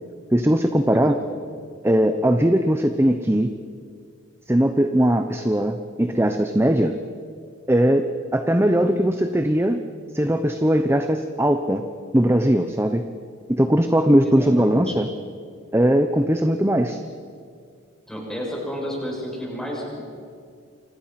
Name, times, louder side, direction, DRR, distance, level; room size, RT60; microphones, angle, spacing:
voice 1, 0.3-1.2 1.8-3.5 4.5-6.9 7.7-8.1 8.3-9.8 10.1-11.8 12.1-13.0 13.5-15.1 15.7-17.0, right 1 dB, 10° right, 7 dB, 0.9 m, -19 dB
voice 2, 0.9-1.4 14.2-14.9 18.1-20.0, equal, 5° left, -3 dB, 7.5 m, -31 dB
29.5 x 26.0 x 6.0 m, 2.3 s
head